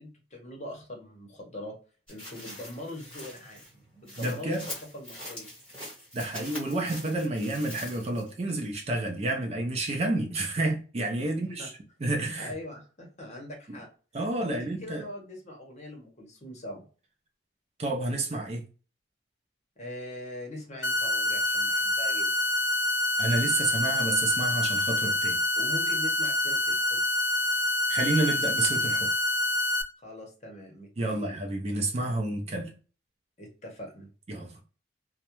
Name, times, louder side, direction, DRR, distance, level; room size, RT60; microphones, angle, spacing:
voice 1, 0.0-1.7 2.1-4.7 4.9-5.5 11.2-11.7 12.4-13.9 14.4-16.9 19.8-22.3 25.5-27.0 30.0-31.4 33.4-34.1, left 1 dB, 35° left, 0.8 m, -42 dB
sound 1, 2.1-8.4 8.8-8.9, left 1 dB, 5° left, 1.2 m, -43 dB
voice 2, 4.2-4.7 6.1-11.7 12.0-12.5 13.7-13.8 14.1-15.0 17.8-18.6 23.2-25.4 27.9-29.1 31.0-32.7 34.3-34.6, right 2 dB, 35° right, 0.4 m, -29 dB
sound 2, 20.8-29.8, left 1 dB, 65° left, 0.4 m, -26 dB
2.3 x 2.1 x 2.9 m
head